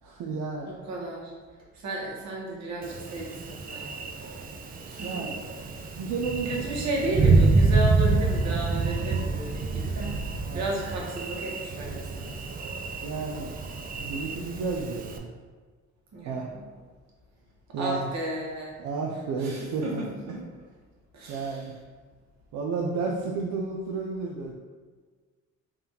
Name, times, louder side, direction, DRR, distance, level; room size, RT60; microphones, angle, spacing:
voice 1, 0.0-0.7 5.0-5.4 6.0-6.9 10.5-10.7 13.0-13.5 14.0-15.3 16.2-16.5 17.7-18.1 18.8-20.0 21.3-21.7 22.5-24.5, right 4 dB, 80° right, -1 dB, 0.5 m, -32 dB
voice 2, 0.6-1.3 1.7-4.1 4.9-5.3 6.4-10.2 10.5-12.4 16.1-16.6 17.8-18.8 19.1-20.4 21.1-21.7, right 1 dB, 60° right, -2 dB, 1.1 m, -33 dB
Thunder, 2.8-15.2, right 3 dB, 30° right, 0.4 m, -27 dB
3.5 x 2.3 x 4.2 m, 1.5 s
cardioid pair, 90°, 30 cm